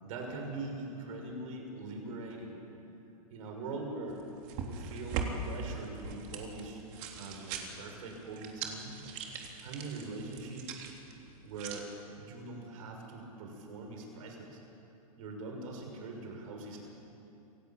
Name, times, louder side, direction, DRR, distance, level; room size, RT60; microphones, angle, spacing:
voice 1, 0.0-2.5 3.3-4.2 4.6-6.8 7.1-8.9 9.6-10.7 11.4-11.9 12.2-14.6 15.2-16.8, right 3 dB, 60° right, 2 dB, 6.4 m, -42 dB
sound 1, 4.1-11.8, right 5 dB, 40° right, 3.5 m, -41 dB
28.0 x 16.5 x 8.9 m, 2.9 s
hypercardioid pair, 115°, 20 cm